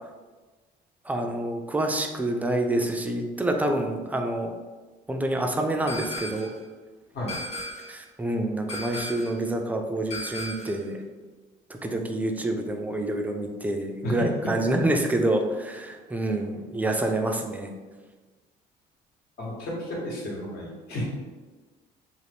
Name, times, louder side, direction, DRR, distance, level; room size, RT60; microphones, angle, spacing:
voice 1, 1.1-4.5 5.1-6.5 7.9-11.0 11.8-17.7, right 1 dB, 10° right, 3 dB, 0.3 m, -27 dB
sound 1, 5.9-6.6 7.3-8.0 8.7-9.4 10.1-10.8, left 1 dB, 40° left, 0.6 m, -36 dB
voice 2, 14.0-14.5 19.4-21.0, left 1 dB, 70° left, -4 dB, 1.1 m, -32 dB
2.6 x 2.5 x 3.3 m, 1.3 s
cardioid pair, 110°, 17 cm